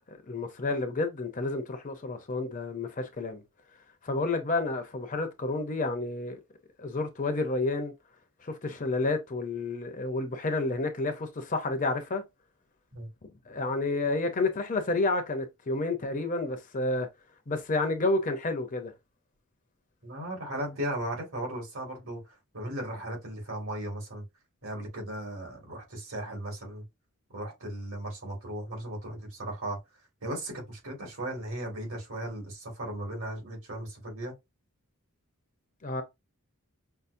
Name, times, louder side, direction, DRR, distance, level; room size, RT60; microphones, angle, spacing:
voice 1, 0.3-3.4 4.0-6.4 6.8-7.9 8.4-12.2 13.5-17.1 17.5-18.9 35.8-36.0, left 2 dB, 35° left, 0.6 m, -30 dB
voice 2, 20.0-24.2 24.6-26.8 27.3-29.8 30.2-34.3, right 1 dB, 65° right, 2.0 m, -36 dB
5.5 x 2.0 x 2.6 m
head